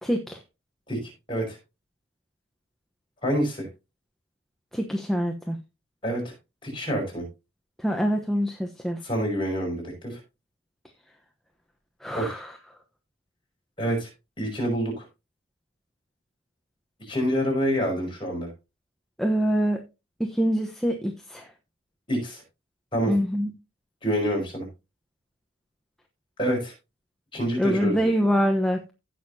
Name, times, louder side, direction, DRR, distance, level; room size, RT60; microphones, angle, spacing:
voice 1, 0.0-0.4 4.7-5.6 7.8-9.0 12.0-12.5 19.2-19.8 20.2-21.5 23.1-23.5 27.6-28.8, equal, ahead, 2 dB, 1.0 m, -25 dB
voice 2, 0.9-1.6 3.2-3.7 6.0-6.3 6.6-7.2 9.0-10.2 12.1-12.4 13.8-14.1 14.4-15.0 17.1-18.5 22.1-22.4 22.9-23.1 24.0-24.7 26.4-26.7 27.3-28.0, equal, 25° left, 0 dB, 5.8 m, -27 dB
16.5 x 6.5 x 2.8 m, 0.26 s
head